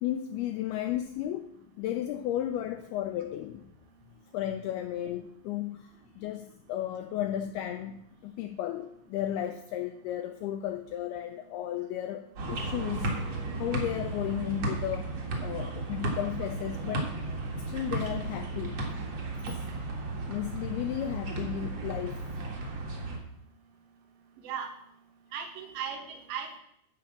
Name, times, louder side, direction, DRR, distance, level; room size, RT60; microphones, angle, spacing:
voice 1, 0.0-3.6 4.3-13.1 13.6-15.1 15.4-17.1 17.6-18.8 19.5-19.6 20.3-22.3, left 11 dB, 85° left, 7 dB, 2.2 m, -34 dB
sound 1, 12.3-23.2, right 2 dB, 50° right, 2.1 m, -34 dB
voice 2, 25.3-26.6, right 7 dB, 80° right, 4 dB, 3.5 m, -37 dB
11.5 x 5.3 x 7.2 m, 0.73 s
omnidirectional pair, 5.1 m